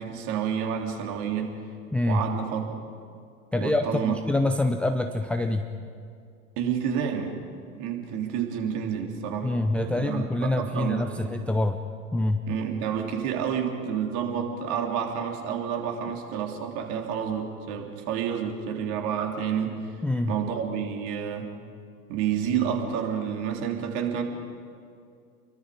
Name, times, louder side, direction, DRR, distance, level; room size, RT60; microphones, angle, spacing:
voice 1, 0.0-1.5 2.1-2.8 3.5-4.2 6.6-7.4 7.7-9.5 10.0-11.2 12.5-19.8 20.3-21.5 22.1-24.2, right 8 dB, 40° right, 2 dB, 3.5 m, -29 dB
voice 2, 1.9-2.2 3.5-5.7 9.4-11.8 12.1-12.4 20.0-20.3, left 2 dB, 5° left, 6 dB, 0.5 m, -25 dB
30.0 x 23.0 x 5.2 m, 2.3 s
figure-of-eight pair, 90°, 44 cm